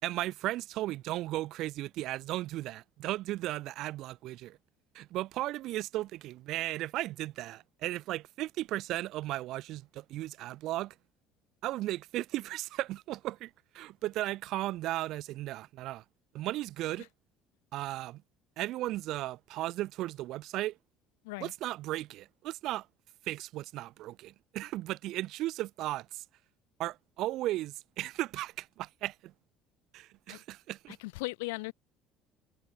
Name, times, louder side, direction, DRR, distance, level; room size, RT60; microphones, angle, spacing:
voice 1, 0.0-4.6 4.9-11.0 11.6-16.0 16.3-17.1 17.7-18.2 18.6-20.8 21.4-22.9 23.2-26.2 26.8-29.3 29.9-31.0, right 16 dB, 65° right, 3.9 m, -36 dB
voice 2, 31.0-31.7, left 25 dB, 90° left, 4.3 m, -37 dB
supercardioid pair, 90°, 0 cm